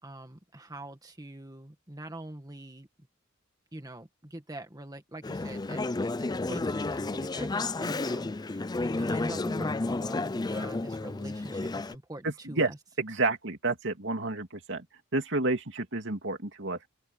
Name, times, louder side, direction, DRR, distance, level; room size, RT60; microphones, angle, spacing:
voice 1, 0.0-2.9 3.7-5.8 6.1-12.8, right 1 dB, 20° right, 1.8 m, -44 dB
Conversation / Chatter, 5.2-11.9, left 2 dB, 20° left, 0.4 m, -31 dB
voice 2, 12.2-12.7 13.0-14.8 15.1-16.9, right 2 dB, 60° right, 2.9 m, -30 dB
open air
head